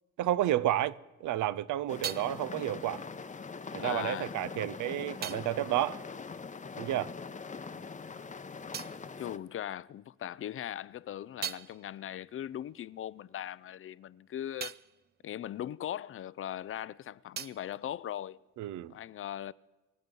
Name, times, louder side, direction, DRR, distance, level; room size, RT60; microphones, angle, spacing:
voice 1, 0.2-3.0 3.7-6.0 6.8-7.1 18.6-18.9, right 13 dB, 80° right, 0.6 m, -31 dB
sound 1, 1.2-7.2 7.5-10.2 10.6-16.6 16.9-18.9, right 9 dB, 35° right, 0.4 m, -46 dB
sound 2, 1.9-9.4, left 5 dB, 25° left, 0.7 m, -42 dB
voice 2, 3.8-4.4 9.2-14.7 15.2-18.4 18.9-19.5, left 11 dB, 45° left, 0.4 m, -39 dB
23.5 x 8.0 x 5.3 m
cardioid pair, 90°, 30 cm